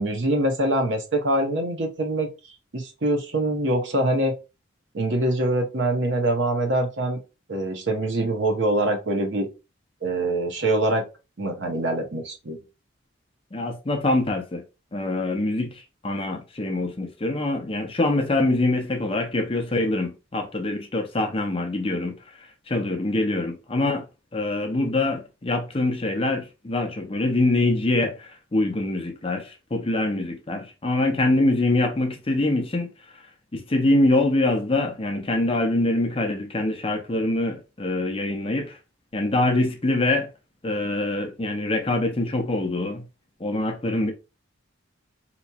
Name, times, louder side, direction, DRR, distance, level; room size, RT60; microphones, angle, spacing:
voice 1, 0.0-2.3 2.7-4.3 4.9-7.2 7.5-9.5 10.0-11.1 11.4-12.6, right 1 dB, 65° right, 0.8 m, -24 dB
voice 2, 13.5-14.6 14.9-24.1 24.3-33.2 33.5-38.8 39.1-40.3 40.6-43.0 43.4-44.1, left 2 dB, 30° left, 0.5 m, -24 dB
4.2 x 2.9 x 2.3 m
head